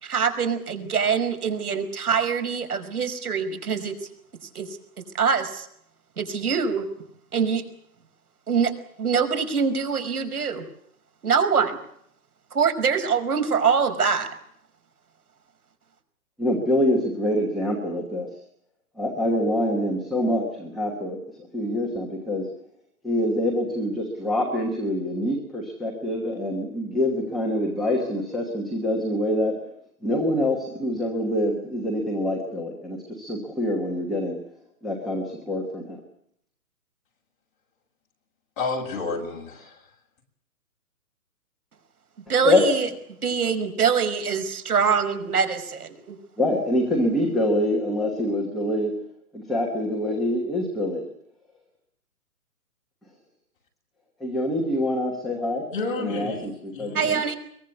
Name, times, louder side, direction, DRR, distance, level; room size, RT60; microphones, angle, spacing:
voice 1, 0.0-4.0 4.6-4.7 5.2-5.7 6.2-6.9 7.3-7.6 8.5-8.7 9.0-10.6 11.2-11.8 12.5-14.3 42.3-42.9 43.2-46.2 56.9-57.4, right 6 dB, 75° right, 7 dB, 5.5 m, -24 dB
voice 2, 16.4-18.4 19.0-22.5 23.0-29.6 30.0-34.4 34.8-36.0 42.4-42.7 46.4-49.0 49.3-51.1 54.2-55.7 56.0-57.2, left 1 dB, ahead, -5 dB, 1.1 m, -25 dB
voice 3, 38.6-39.8 55.7-57.1, left 3 dB, 35° left, 0 dB, 7.5 m, -31 dB
23.5 x 23.0 x 8.4 m, 0.70 s
hypercardioid pair, 170°, 46 cm